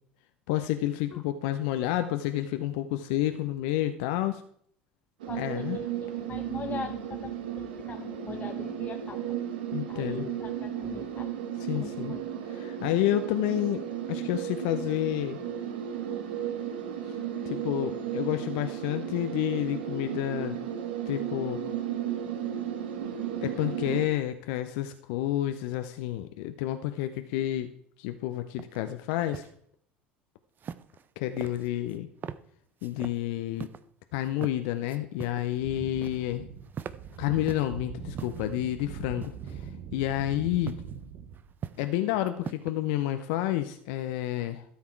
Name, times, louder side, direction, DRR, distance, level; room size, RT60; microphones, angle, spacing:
voice 1, 0.5-4.4 5.3-5.8 9.7-10.3 11.6-12.2 12.5-15.4 17.0-17.2 17.4-20.6 21.1-21.6 23.4-27.7 28.0-29.5 31.2-32.1 32.8-33.7 34.1-36.5 37.2-40.8 41.8-44.6, left 13 dB, 70° left, 9 dB, 0.7 m, -30 dB
sound 1, 5.2-24.1, right 9 dB, 80° right, 1.2 m, -34 dB
voice 2, 5.3-9.2 9.9-11.3 11.7-12.2, left 5 dB, 30° left, 5 dB, 0.9 m, -41 dB
sound 2, 28.6-28.8 29.1-29.5 30.6-31.1 31.4-32.0 32.2-32.4 32.8-33.2 33.6-33.8 34.3-34.6 34.9-35.5 35.8-36.3 36.6-37.7 38.1-38.5 39.2-39.6 40.7-40.9 41.3-41.9 42.3-42.7, right 8 dB, 40° right, 0.7 m, -41 dB
sound 3, 35.5-41.6, right 8 dB, 60° right, 1.1 m, -42 dB
12.5 x 7.3 x 4.5 m, 0.64 s
hypercardioid pair, 70°, 5 cm